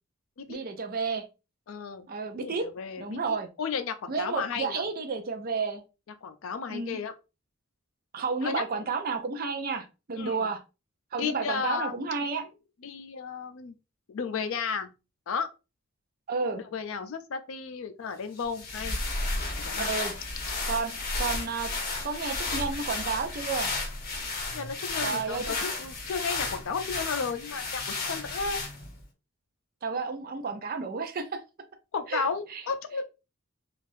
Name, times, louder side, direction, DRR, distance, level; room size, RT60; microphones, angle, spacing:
voice 1, 0.5-1.2 2.1-2.7 3.0-3.5 4.1-5.8 6.7-7.0 8.1-10.6 11.1-12.4 16.3-16.6 19.8-20.1 20.7-21.7 22.0-23.7 25.0-25.4 29.8-31.4 32.1-32.2 32.5-32.6, right 4 dB, 45° right, 0.5 m, -31 dB
voice 2, 1.7-2.1 2.3-4.8 6.2-7.1 8.4-8.6 10.2-10.5 11.2-12.0 12.8-13.7 14.1-14.9 15.3-15.5 16.7-19.0 19.4-19.9 24.5-27.8 28.1-28.6 31.9-33.0, left 5 dB, 65° left, 0.4 m, -33 dB
sound 1, 18.4-29.0, left 3 dB, 45° left, 0.9 m, -33 dB
3.3 x 2.4 x 2.6 m
head